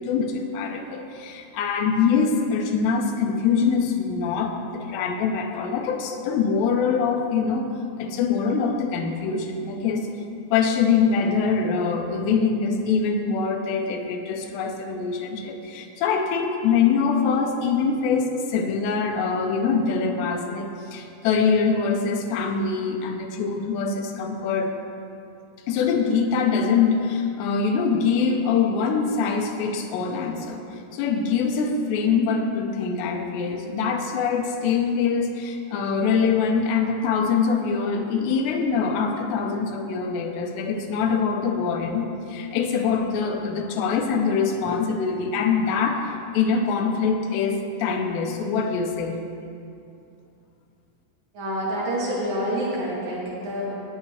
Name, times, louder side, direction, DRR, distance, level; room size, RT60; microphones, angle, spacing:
voice 1, 0.0-7.7 8.0-10.1 10.5-24.7 25.7-30.6 30.9-49.2, left 5 dB, 80° left, 3 dB, 2.9 m, -24 dB
voice 2, 51.3-53.7, equal, 55° right, -7 dB, 3.9 m, -27 dB
18.5 x 7.8 x 3.2 m, 2.6 s
omnidirectional pair, 5.1 m